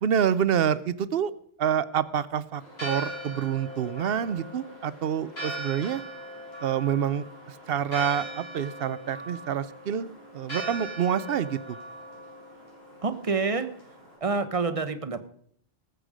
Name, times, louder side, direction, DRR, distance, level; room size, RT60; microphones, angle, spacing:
voice 1, 0.0-1.3 1.6-6.0 6.6-7.2 7.7-11.8, right 8 dB, 70° right, 17 dB, 0.9 m, -27 dB
Church bell, 2.6-14.2, right 1 dB, 85° left, 6.0 m, -40 dB
voice 2, 13.0-13.7 14.2-15.3, right 4 dB, 35° right, 9 dB, 1.0 m, -27 dB
19.0 x 8.0 x 5.0 m, 0.62 s
omnidirectional pair, 1.0 m